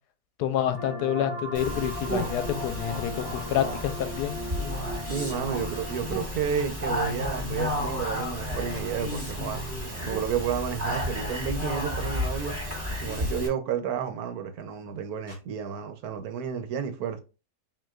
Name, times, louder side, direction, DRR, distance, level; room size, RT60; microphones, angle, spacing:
voice 1, 0.4-4.4, left 10 dB, 90° left, 1.2 m, -28 dB
sound 1, 0.7-6.1, equal, 50° left, 1.3 m, -38 dB
Speech, 1.5-13.5, left 1 dB, 10° right, 1.3 m, -32 dB
voice 2, 5.1-9.6 10.0-12.5 12.9-17.2, right 8 dB, 75° right, 1.1 m, -31 dB
sound 2, 6.5-6.7 8.7-8.9 10.9-11.1 13.1-13.2 15.3-15.4, left 1 dB, 30° left, 2.0 m, -49 dB
5.8 x 2.6 x 2.3 m
omnidirectional pair, 1.7 m